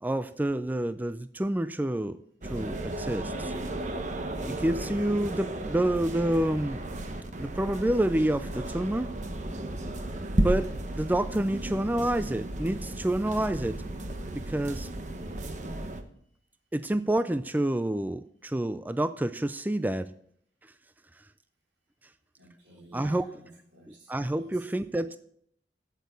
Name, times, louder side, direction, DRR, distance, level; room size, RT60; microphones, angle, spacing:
voice 1, 0.0-2.2 2.5-3.5 4.5-6.8 7.4-9.1 10.4-10.7 11.0-13.8 14.4-14.9 16.7-20.1 22.9-23.2 24.1-25.2, right 1 dB, 10° right, 12 dB, 0.3 m, -28 dB
sound 1, 2.4-16.0, right 1 dB, 40° right, 1.1 m, -34 dB
voice 2, 22.4-24.7, right 1 dB, 90° right, -1 dB, 3.8 m, -51 dB
8.3 x 8.3 x 8.0 m, 0.67 s
head